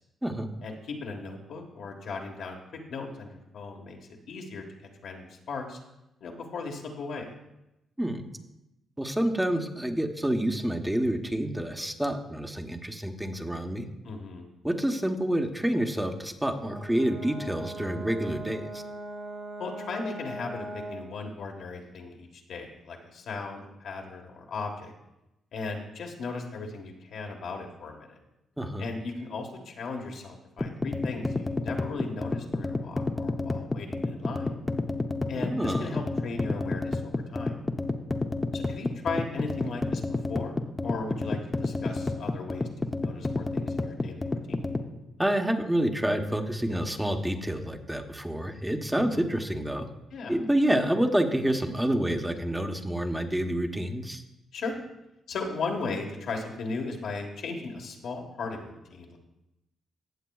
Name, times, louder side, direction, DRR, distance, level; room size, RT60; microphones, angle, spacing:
voice 1, 0.6-4.0 4.3-4.6 5.0-5.8 6.2-7.3 14.0-14.4 19.6-24.9 25.5-28.2 28.8-34.6 35.3-37.6 38.5-44.7 49.1-49.3 50.1-50.4 54.5-54.8 55.3-59.2, left 4 dB, 75° left, 1 dB, 1.4 m, -37 dB
voice 2, 9.0-13.9 14.6-18.8 28.6-28.9 35.3-36.0 45.2-49.9 50.3-54.2, right 1 dB, 10° right, 4 dB, 1.0 m, -28 dB
Brass instrument, 16.6-21.1, right 1 dB, 75° right, 3.4 m, -40 dB
sound 1, 30.6-44.9, left 2 dB, 20° left, 0.7 m, -30 dB
16.0 x 7.3 x 2.4 m, 0.92 s
cardioid pair, 70°, 0 cm